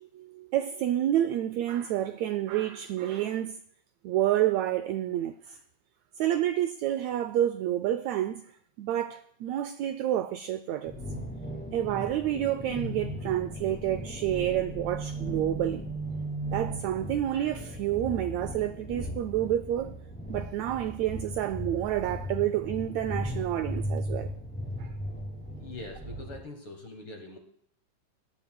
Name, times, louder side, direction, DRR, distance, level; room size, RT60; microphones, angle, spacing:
voice 1, 0.0-3.6 4.0-5.6 6.2-8.4 8.8-10.9 11.7-15.8 16.5-19.9 20.3-24.3 24.8-24.9, right 12 dB, 85° right, 1.6 m, -29 dB
sound 1, 10.9-26.4, right 1 dB, 5° left, 1.9 m, -37 dB
voice 2, 25.6-27.4, left 2 dB, 60° left, 1.5 m, -43 dB
21.5 x 10.5 x 2.2 m
omnidirectional pair, 3.7 m